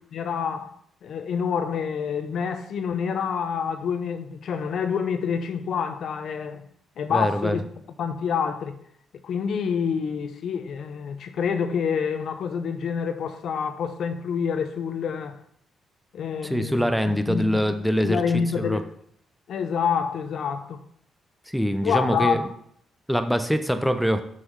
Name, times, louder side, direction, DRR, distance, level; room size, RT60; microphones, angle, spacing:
voice 1, 0.1-0.7 1.0-6.6 7.0-7.6 8.0-8.8 9.2-15.4 16.1-17.7 18.0-18.9 19.5-20.8 21.8-22.5, left 6 dB, 70° left, 0.7 m, -27 dB
voice 2, 7.1-7.6 16.4-18.2 18.6-18.8 21.5-22.4 23.1-24.2, equal, ahead, 0.8 m, -23 dB
6.2 x 5.8 x 4.7 m
supercardioid pair, 60°, 0 cm